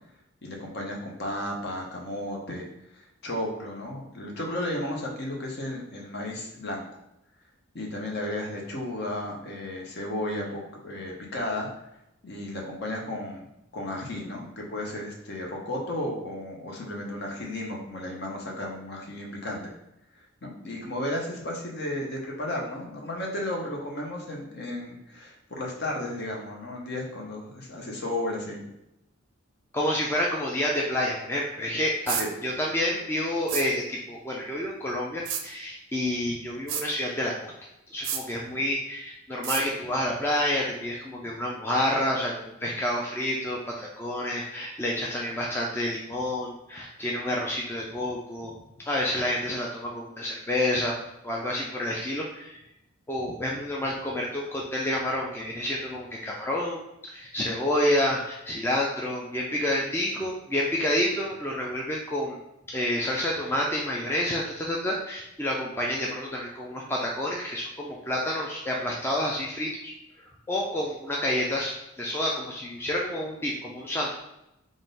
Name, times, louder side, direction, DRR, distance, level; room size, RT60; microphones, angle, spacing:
voice 1, 0.4-2.7 2.9-6.9 7.7-11.7 12.2-13.5 13.7-19.7 20.4-28.6 32.2-32.3, left 1 dB, 50° left, -1 dB, 0.8 m, -34 dB
voice 2, 29.7-37.5 37.9-48.5 48.8-50.9 51.2-52.6 53.1-62.4 62.7-69.9 70.5-74.1, left 1 dB, 10° left, -3 dB, 0.4 m, -29 dB
sound 1, 32.1-32.3 33.5-33.7 35.3-35.4 36.7-36.9 38.0-38.2 39.4-39.6, right 8 dB, 60° right, 0.4 m, -29 dB
3.6 x 2.5 x 3.9 m, 0.86 s
head